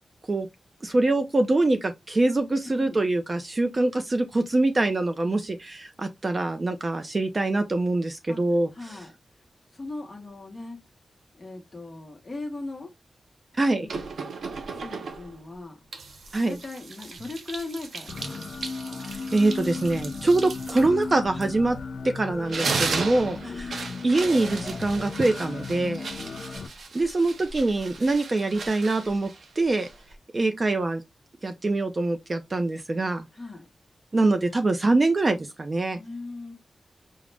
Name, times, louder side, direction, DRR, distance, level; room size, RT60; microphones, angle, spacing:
voice 1, 0.8-8.7 13.6-13.9 16.3-16.6 19.1-21.8 22.0-26.1 26.9-29.3 29.6-29.9 30.3-31.0 31.4-33.3 34.1-36.0, right 2 dB, 30° right, 0.4 m, -24 dB
voice 2, 8.7-9.4 9.7-10.8 11.3-12.9 13.7-14.1 14.7-15.8 16.4-18.5 23.4-23.6 33.3-33.7 36.0-36.5, left 2 dB, 25° left, 0.8 m, -39 dB
sound 1, 13.9-15.4 15.9-22.0 22.3-30.2, right 4 dB, 80° right, 0.6 m, -36 dB
sound 2, 18.1-26.7, left 4 dB, 50° left, 0.4 m, -36 dB
4.9 x 2.0 x 3.2 m
wide cardioid pair, 165°, 0 cm